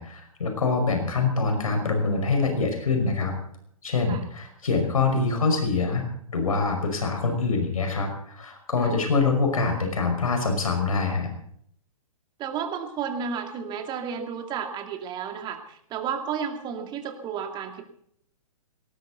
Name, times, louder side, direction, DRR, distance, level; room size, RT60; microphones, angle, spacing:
voice 1, 0.0-3.4 3.8-11.3, left 4 dB, 70° left, 4 dB, 5.5 m, -25 dB
voice 2, 12.4-17.8, right 7 dB, 25° right, 5 dB, 2.5 m, -32 dB
19.0 x 18.5 x 4.1 m, 0.68 s
figure-of-eight pair, 115°, 18 cm